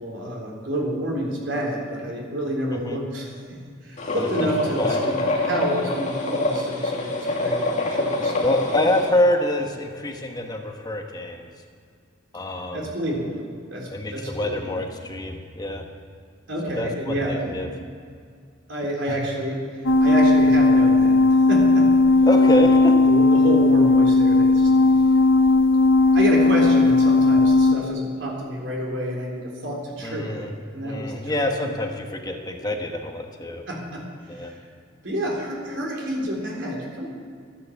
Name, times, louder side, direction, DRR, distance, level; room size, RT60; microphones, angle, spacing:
voice 1, 0.0-3.4 3.8-8.5 12.7-13.4 13.7-14.8 16.5-17.5 18.7-19.6 20.0-21.1 21.5-21.9 23.1-24.7 26.1-31.5 33.7-34.1 34.3-34.6 35.0-37.1, equal, 70° right, -1 dB, 3.7 m, -28 dB
sound 1, 4.0-9.1, left 2 dB, 40° left, 2.3 m, -25 dB
voice 2, 4.2-4.5 4.8-5.0 8.4-11.5 12.3-12.8 13.9-15.9 16.8-17.7 19.1-19.2 22.2-22.9 30.0-30.5 30.8-33.6 34.3-34.5, left 1 dB, 20° left, 3 dB, 1.2 m, -26 dB
sound 2, 19.9-27.8, left 2 dB, 85° left, 1.2 m, -16 dB
13.5 x 10.5 x 7.3 m, 2.2 s
head